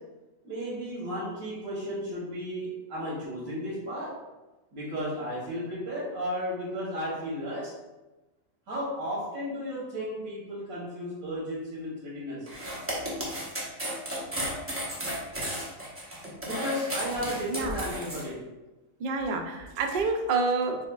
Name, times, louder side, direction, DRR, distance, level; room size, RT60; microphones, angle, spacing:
voice 1, 0.4-4.1 4.7-7.7 8.7-12.5 16.4-18.4, equal, 80° right, -8 dB, 1.5 m, -34 dB
sound 1, 12.5-18.2, equal, 10° right, 0.7 m, -34 dB
voice 2, 19.0-20.8, right 4 dB, 65° right, 3 dB, 0.5 m, -28 dB
5.4 x 3.3 x 2.3 m, 1.1 s
omnidirectional pair, 1.4 m